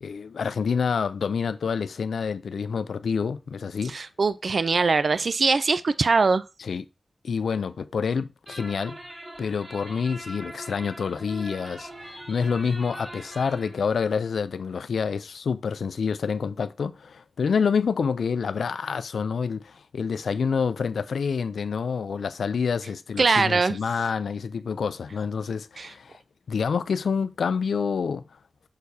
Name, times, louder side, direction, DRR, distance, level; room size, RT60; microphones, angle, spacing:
voice 1, 0.0-3.9 6.6-6.9 7.2-9.0 9.4-26.2 26.5-28.2, left 6 dB, 90° left, 0.4 m, -27 dB
voice 2, 3.9-6.4 23.2-23.8 25.8-25.9, right 4 dB, 65° right, 0.4 m, -22 dB
sound 1, 8.5-13.8, right 1 dB, 25° right, 3.4 m, -42 dB
6.5 x 5.8 x 2.7 m
cardioid pair, 55°, 0 cm